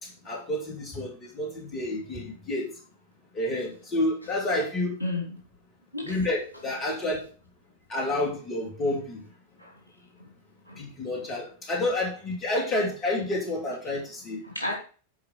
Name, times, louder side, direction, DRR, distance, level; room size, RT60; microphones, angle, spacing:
voice 1, 0.0-2.7 3.3-5.0 6.1-7.2 7.9-9.2 10.8-14.4, left 1 dB, 30° left, -1 dB, 2.9 m, -29 dB
voice 2, 5.0-5.4 5.9-6.2 9.6-9.8 10.2-10.3 10.7-10.8 11.1-11.2 14.4-14.7, left 2 dB, 80° left, -1 dB, 3.1 m, -33 dB
9.9 x 4.9 x 5.0 m, 0.39 s
figure-of-eight pair, 90°, 0 cm